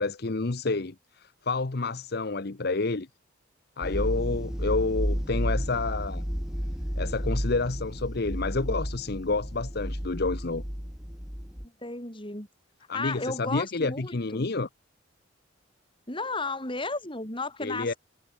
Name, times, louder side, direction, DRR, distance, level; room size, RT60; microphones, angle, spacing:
voice 1, 0.0-3.1 3.8-6.2 7.0-10.6 12.9-14.7 17.6-17.9, left 3 dB, 50° left, 0.9 m, -29 dB
sound 1, 3.8-11.7, equal, 5° right, 1.4 m, -32 dB
voice 2, 11.6-12.5 12.9-14.5 16.1-18.0, left 3 dB, 25° left, 6.2 m, -34 dB
head